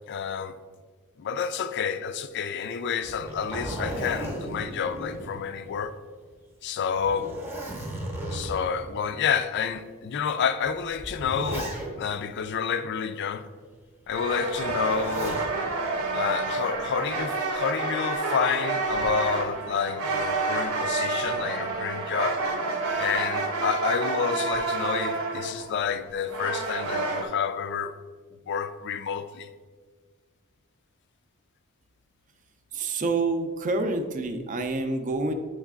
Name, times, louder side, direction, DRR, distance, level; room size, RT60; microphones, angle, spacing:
voice 1, 0.1-0.5 1.2-5.9 6.6-7.3 8.3-13.5 14.1-15.4 16.1-22.4 22.9-28.0 28.5-29.5, left 7 dB, 50° left, 0.3 m, -29 dB
Zipper (clothing), 3.0-5.9 6.3-6.4 7.0-8.8 9.6-9.7 10.6-12.2 14.6-15.5 16.9-17.4, right 1 dB, 10° right, 0.8 m, -35 dB
sound 1, 14.1-27.3, right 3 dB, 80° right, 0.8 m, -29 dB
voice 2, 32.7-35.3, right 3 dB, 35° right, 0.5 m, -27 dB
8.1 x 3.2 x 3.6 m
head